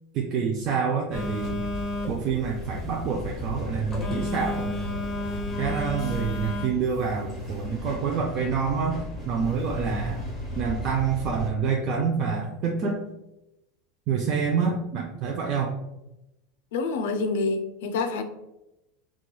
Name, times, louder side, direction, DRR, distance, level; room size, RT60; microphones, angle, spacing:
voice 1, 0.1-1.6 2.1-4.8 5.6-9.0 9.3-10.2 10.6-13.0 14.1-15.7, right 6 dB, 45° right, 1 dB, 0.3 m, -27 dB
Telephone, 1.1-6.7, left 1 dB, 15° left, 0.8 m, -32 dB
sound 1, 2.5-11.5, left 1 dB, 10° right, 1.1 m, -37 dB
voice 2, 16.7-18.2, left 4 dB, 80° left, 7 dB, 0.4 m, -27 dB
2.9 x 2.2 x 2.2 m, 0.93 s
supercardioid pair, 140°, 0 cm